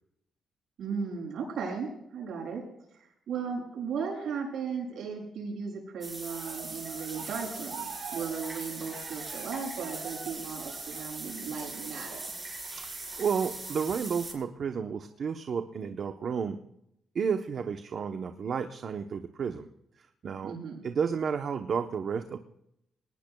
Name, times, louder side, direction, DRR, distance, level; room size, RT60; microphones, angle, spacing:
voice 1, 0.8-2.6 2.9-12.3 20.4-20.8, right 5 dB, 70° right, -1 dB, 7.1 m, -36 dB
sound 1, 6.0-14.3, right 3 dB, 20° right, 5.2 m, -40 dB
Cheering, 6.2-11.5 11.9-12.3, right 8 dB, 90° right, 4.6 m, -46 dB
voice 2, 12.8-16.6 17.1-19.7 20.0-20.5 20.8-22.4, right 6 dB, 50° right, 6 dB, 0.9 m, -32 dB
22.0 x 19.0 x 2.3 m, 0.78 s
cardioid pair, 115°, 0 cm